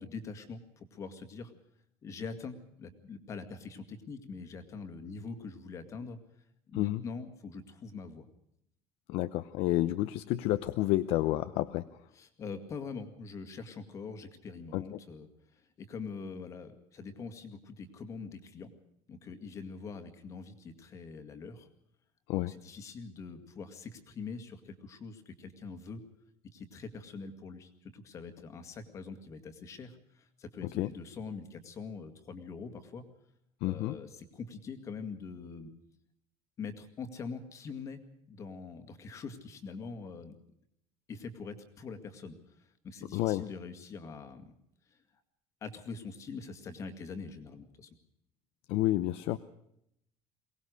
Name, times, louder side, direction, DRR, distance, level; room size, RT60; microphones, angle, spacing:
voice 1, 0.0-1.5 2.0-6.2 6.7-8.3 12.1-18.7 19.1-21.7 22.5-26.0 26.5-33.1 33.6-35.7 36.6-38.0 38.3-40.4 41.1-44.5 44.9-45.0 45.6-48.0, left 4 dB, 30° left, 9 dB, 2.1 m, -44 dB
voice 2, 9.1-11.9 14.7-14.8 22.3-22.5 30.6-30.9 33.6-34.0 43.1-43.4 48.7-49.4, left 16 dB, 60° left, 12 dB, 0.8 m, -30 dB
23.0 x 18.5 x 6.4 m, 0.74 s
cardioid pair, 175°, 10 cm